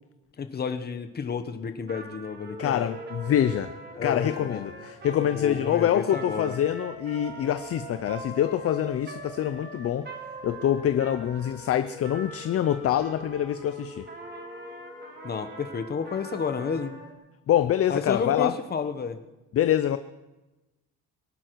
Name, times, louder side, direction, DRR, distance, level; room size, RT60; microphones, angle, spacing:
voice 1, 0.4-3.0 4.0-4.7 5.3-6.5 15.2-17.0 17.9-19.2, left 6 dB, 30° left, 1.0 m, -31 dB
Trumpet, 1.8-13.6 14.1-17.1, right 2 dB, 30° right, 1.6 m, -44 dB
sound 1, 2.4-17.1, equal, 10° right, 2.2 m, -46 dB
voice 2, 2.6-3.7 4.0-10.1 10.4-14.0 17.5-18.5 19.5-20.0, left 10 dB, 45° left, 0.5 m, -25 dB
sound 2, 12.3-17.4, left 5 dB, 70° left, 3.1 m, -53 dB
23.5 x 11.5 x 4.6 m
cardioid pair, 175°, 34 cm